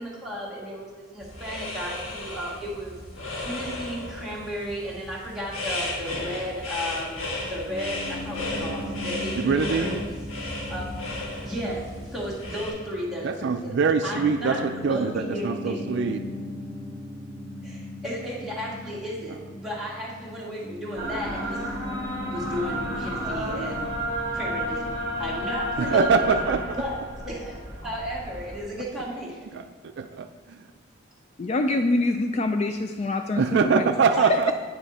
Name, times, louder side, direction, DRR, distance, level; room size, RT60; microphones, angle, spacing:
voice 1, 0.0-2.9 3.4-10.0 10.7-10.9 11.4-13.3 13.6-13.7 14.0-14.6 14.9-15.8 17.6-21.7 22.2-23.9 24.3-24.8 25.2-26.4 26.7-27.0 27.3-27.5 27.8-29.5 34.1-34.3, equal, ahead, -7 dB, 1.9 m, -34 dB
sound 1, 1.2-12.7, left 2 dB, 85° left, 1.5 m, -34 dB
Piano, 7.7-27.1, left 1 dB, 15° left, 1.4 m, -38 dB
voice 2, 9.4-10.0 13.2-16.2 25.8-26.8 29.5-29.6 30.0-30.6 33.4-34.5, right 5 dB, 55° right, 9 dB, 0.3 m, -24 dB
sound 2, 21.0-28.6, equal, 20° right, 1.9 m, -32 dB
voice 3, 31.4-33.9 34.2-34.5, left 2 dB, 35° left, 6 dB, 0.3 m, -25 dB
9.0 x 5.9 x 4.1 m, 1.5 s
head